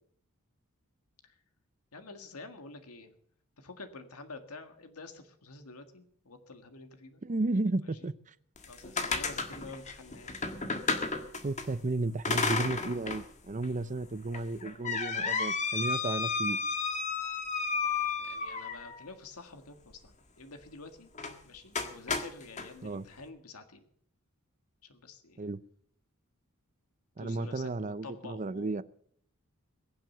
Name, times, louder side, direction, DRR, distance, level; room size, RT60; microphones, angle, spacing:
voice 1, 1.9-3.1 3.6-7.2 8.7-10.4 18.2-21.1 21.5-23.9 24.8-25.4 27.2-28.8, left 3 dB, 85° left, 7 dB, 1.8 m, -48 dB
voice 2, 7.2-8.1 11.4-16.6 22.8-23.1 25.4-25.6 27.2-28.8, right 2 dB, 35° right, 15 dB, 0.6 m, -33 dB
sound 1, 8.6-11.7 12.2-13.2 13.6-13.7 14.3-19.0 21.1-21.4 21.7-22.7, left 4 dB, 35° left, 1.7 m, -32 dB
21.5 x 7.7 x 6.7 m, 0.65 s
head